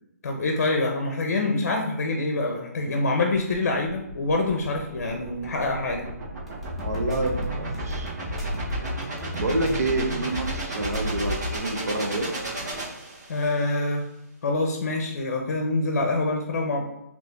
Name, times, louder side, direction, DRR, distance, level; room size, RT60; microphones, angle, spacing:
voice 1, 0.2-6.1 13.3-14.0 14.4-16.8, left 2 dB, 55° left, 2 dB, 0.6 m, -25 dB
sound 1, 3.3-13.6, right 2 dB, 90° right, 1.3 m, -35 dB
sound 2, 6.5-11.6, left 1 dB, ahead, 0.5 m, -32 dB
voice 2, 6.8-8.1 9.4-12.3, right 2 dB, 65° right, 3 dB, 0.8 m, -28 dB
2.9 x 2.7 x 3.4 m, 0.84 s
hypercardioid pair, 155°, 9 cm